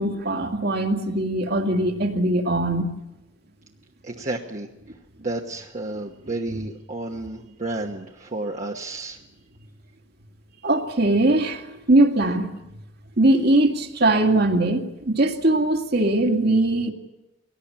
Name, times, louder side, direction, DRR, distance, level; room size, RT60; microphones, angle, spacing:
voice 1, 0.0-2.9 10.6-12.6 13.2-16.9, right 2 dB, 55° right, 4 dB, 2.2 m, -21 dB
voice 2, 4.0-4.7 5.2-9.2, right 2 dB, 40° right, 0 dB, 1.3 m, -31 dB
22.5 x 18.0 x 8.7 m, 0.95 s
head